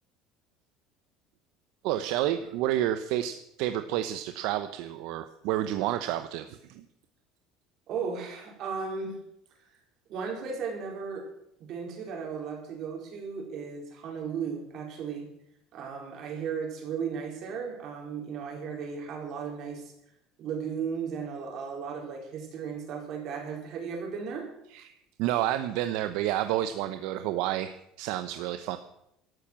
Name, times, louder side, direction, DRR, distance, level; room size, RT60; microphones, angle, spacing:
voice 1, 1.8-6.8 24.7-28.8, right 13 dB, 65° right, 9 dB, 0.8 m, -30 dB
voice 2, 7.9-9.2 9.7-9.8 10.1-11.3 11.6-15.3 15.7-19.9 20.4-24.5, right 6 dB, 45° right, 1 dB, 4.5 m, -35 dB
12.5 x 11.5 x 7.5 m, 0.79 s
cardioid pair, 165°, 0 cm